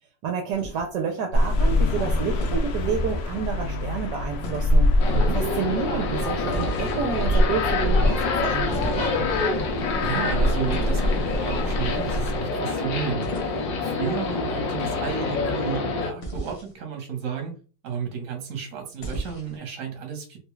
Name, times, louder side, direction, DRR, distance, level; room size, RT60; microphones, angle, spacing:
voice 1, 0.2-4.9 5.3-9.1, right 6 dB, 75° right, 3 dB, 1.2 m, -29 dB
sound 1, 0.5-1.2 2.4-2.7 4.4-4.9 6.5-7.2 8.7-9.4 10.7-11.1 13.2-13.5 16.2-16.7 19.0-19.6, right 2 dB, 45° left, 1.0 m, -35 dB
sound 2, 1.3-12.4, left 1 dB, 70° left, 1.0 m, -25 dB
sound 3, 5.0-16.1, left 3 dB, 90° left, 1.5 m, -27 dB
voice 2, 10.0-17.5 17.8-20.4, right 7 dB, 50° right, 2 dB, 1.2 m, -32 dB
3.6 x 2.3 x 3.1 m, 0.37 s
omnidirectional pair, 1.9 m